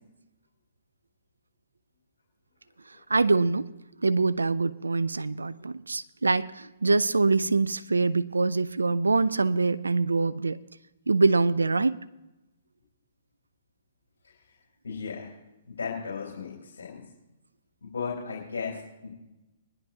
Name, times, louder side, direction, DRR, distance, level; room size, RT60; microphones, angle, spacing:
voice 1, 3.1-3.7 4.0-10.6 11.1-12.0, right 3 dB, 90° right, 16 dB, 0.4 m, -24 dB
voice 2, 14.8-15.3 15.6-17.0 17.8-19.1, left 5 dB, 80° left, -2 dB, 3.7 m, -35 dB
21.5 x 10.5 x 2.9 m, 0.98 s
hypercardioid pair, 125°, 0 cm